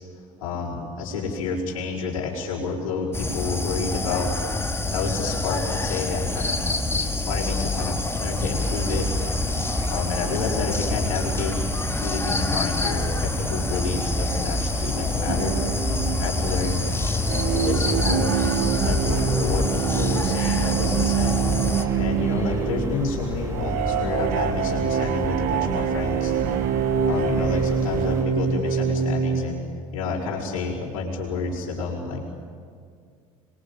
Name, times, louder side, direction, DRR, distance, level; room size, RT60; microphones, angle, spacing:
voice 1, 0.4-4.4 4.8-6.7 7.0-9.1 9.9-11.6 12.0-15.6 16.2-16.9 17.5-18.5 18.8-21.4 22.0-26.3 27.0-29.6 29.9-32.3, left 4 dB, 75° left, -5 dB, 5.6 m, -29 dB
sound 1, 3.1-21.8, left 2 dB, 15° left, 2.4 m, -26 dB
sound 2, 8.5-28.2, right 2 dB, 20° right, 4.5 m, -33 dB
sound 3, 15.3-29.4, right 7 dB, 60° right, 1.8 m, -25 dB
27.0 x 23.0 x 9.1 m, 2.1 s
hypercardioid pair, 70°, 17 cm